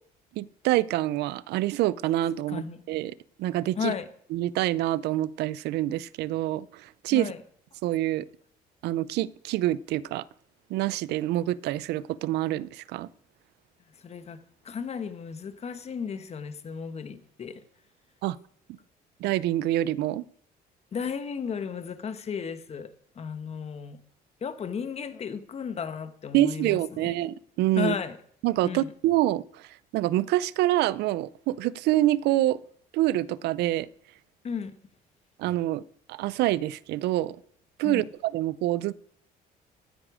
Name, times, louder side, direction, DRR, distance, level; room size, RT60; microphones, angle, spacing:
voice 1, 0.4-2.6 2.9-3.1 3.4-3.9 4.3-7.3 7.8-8.2 8.8-10.2 10.7-13.1 18.2-18.4 19.2-20.2 26.3-27.9 28.4-32.6 32.9-33.9 35.4-35.8 36.1-37.4 37.8-38.9, right 15 dB, 80° right, 0.5 m, -26 dB
voice 2, 2.5-2.8 3.8-4.1 7.1-7.4 13.9-17.6 20.9-24.0 24.4-27.1 27.8-28.2 28.6-28.9 34.4-34.7 37.8-38.1, left 6 dB, 40° left, 1.3 m, -34 dB
15.0 x 10.0 x 4.9 m
cardioid pair, 110°, 17 cm